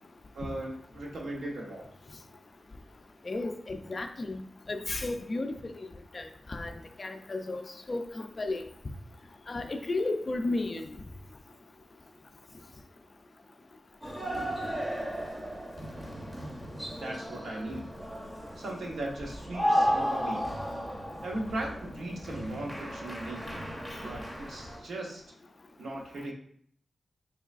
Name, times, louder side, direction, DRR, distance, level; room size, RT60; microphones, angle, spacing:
voice 1, 0.3-1.9 17.0-17.9 18.6-20.5 21.2-23.6 24.0-25.2 25.8-26.3, right 1 dB, 85° right, -1 dB, 0.9 m, -38 dB
voice 2, 3.3-4.4 4.7-5.5 6.1-6.7 7.0-7.6 7.9-8.6 9.5-10.8, left 2 dB, 35° left, 6 dB, 0.3 m, -33 dB
sound 1, 14.0-24.8, equal, 15° right, 0.6 m, -34 dB
4.5 x 3.2 x 2.4 m, 0.62 s
wide cardioid pair, 140°, 0 cm